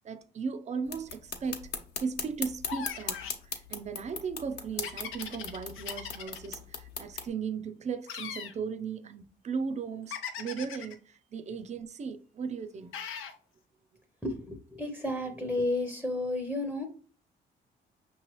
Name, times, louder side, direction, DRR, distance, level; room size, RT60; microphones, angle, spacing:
voice 1, 0.0-1.6 2.0-13.0, right 5 dB, 35° right, 0.5 m, -37 dB
sound 1, 0.9-7.3, left 5 dB, 55° left, 1.0 m, -39 dB
sound 2, 2.7-3.4 4.8-6.5 8.1-8.6 10.1-10.9 12.9-13.4, left 7 dB, 85° left, 0.7 m, -39 dB
voice 2, 14.2-16.9, left 2 dB, ahead, 0.7 m, -32 dB
5.6 x 3.0 x 3.0 m
cardioid pair, 90°, 20 cm